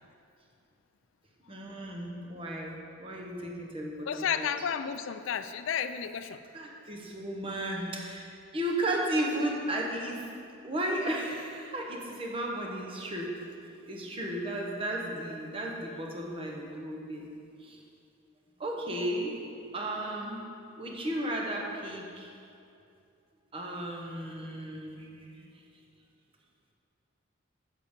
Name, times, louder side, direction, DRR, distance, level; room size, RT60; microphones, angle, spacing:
voice 1, 1.5-4.5 6.5-10.2 10.6-13.3 13.9-17.3 17.6-17.8 18.6-19.4 19.7-20.4 20.8-22.3 23.5-25.5, right 1 dB, 25° right, -1 dB, 0.9 m, -34 dB
voice 2, 4.1-6.4, left 8 dB, 70° left, 10 dB, 0.4 m, -32 dB
7.7 x 6.3 x 5.1 m, 2.5 s
head